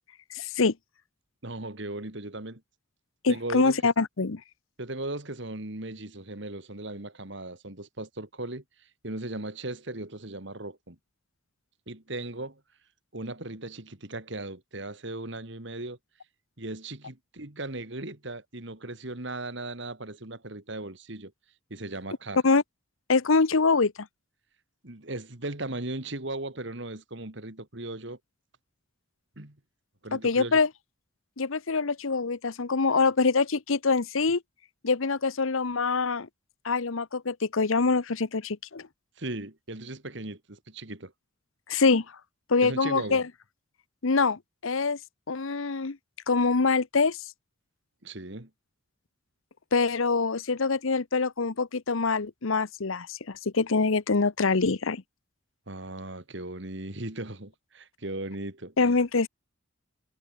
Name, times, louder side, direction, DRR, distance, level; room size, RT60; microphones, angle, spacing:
voice 1, 0.3-0.7 3.2-4.4 22.4-22.6 23.1-24.1 30.1-30.7 31.4-34.4 34.8-36.3 36.6-38.9 41.7-42.0 42.5-43.3 44.0-45.0 45.3-46.0 46.3-47.2 49.7-55.0 58.8-59.3, left 4 dB, 75° left, 0.9 m, -25 dB
voice 2, 1.4-2.6 3.3-3.8 4.8-8.6 9.0-11.0 11.9-12.6 13.1-16.0 16.6-21.3 21.7-22.4 24.8-28.2 29.4-29.6 30.0-30.6 39.2-41.1 42.6-43.2 48.0-48.5 55.7-58.7, right 2 dB, 55° right, 2.3 m, -37 dB
head